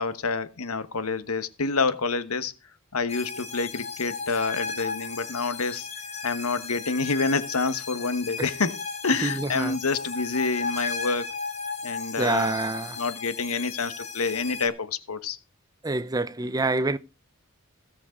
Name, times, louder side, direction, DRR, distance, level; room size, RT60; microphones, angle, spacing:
voice 1, 0.0-2.5 2.9-5.9 6.2-11.3 11.8-12.6 13.0-15.4, left 4 dB, 90° left, 1.2 m, -28 dB
sound 1, 3.1-14.7, left 4 dB, 30° left, 2.6 m, -35 dB
voice 2, 9.2-9.8 12.2-13.0 15.8-17.0, right 2 dB, 15° right, 0.6 m, -27 dB
17.0 x 7.2 x 5.1 m
head